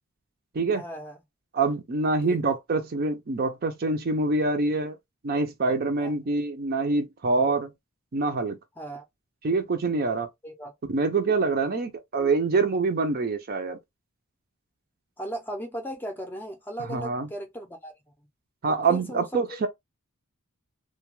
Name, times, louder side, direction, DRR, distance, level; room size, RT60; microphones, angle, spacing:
voice 1, 0.7-1.2 2.2-2.6 6.0-6.1 8.8-9.1 10.4-10.7 15.2-17.9 18.9-19.4, right 1 dB, 10° left, 0.5 m, -37 dB
voice 2, 1.5-5.0 5.2-7.7 8.1-8.6 9.4-10.3 10.9-13.8 16.9-17.3 18.6-19.7, right 3 dB, 45° right, 0.5 m, -25 dB
2.2 x 2.2 x 3.1 m
head